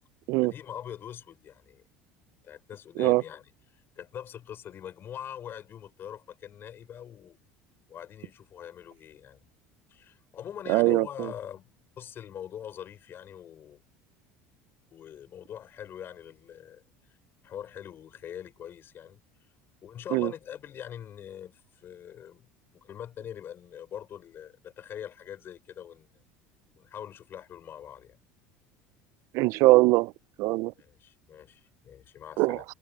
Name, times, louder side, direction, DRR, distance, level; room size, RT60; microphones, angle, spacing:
voice 1, 0.4-1.8 2.4-7.4 7.9-9.4 9.9-13.8 14.9-17.2 17.4-19.2 19.8-22.5 22.7-26.1 26.8-28.2 30.8-32.6, left 9 dB, 45° left, 6.0 m, -43 dB
voice 2, 10.7-11.3 20.1-20.3 29.3-30.1 30.4-30.7 32.4-32.6, right 21 dB, 65° right, 0.5 m, -22 dB
supercardioid pair, 95°, 5 cm